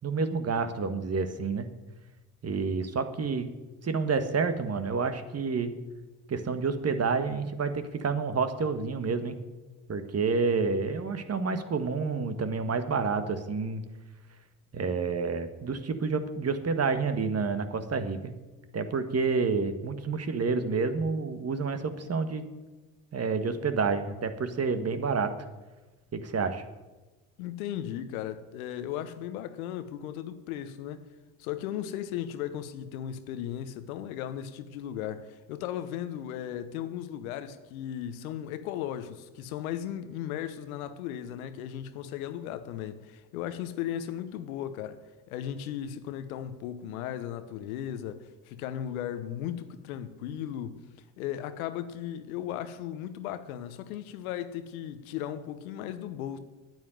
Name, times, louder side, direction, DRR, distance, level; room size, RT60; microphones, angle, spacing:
voice 1, 0.0-1.7 2.4-3.5 3.8-5.8 6.3-9.4 9.9-13.8 14.7-18.3 18.7-22.4 23.1-25.3 26.1-26.6, right 4 dB, 35° right, 1.6 m, -29 dB
voice 2, 27.4-31.0 31.4-45.0 45.3-50.8 51.2-56.4, left 10 dB, 85° left, 1.0 m, -36 dB
9.3 x 9.3 x 9.3 m
hypercardioid pair, 60°, 41 cm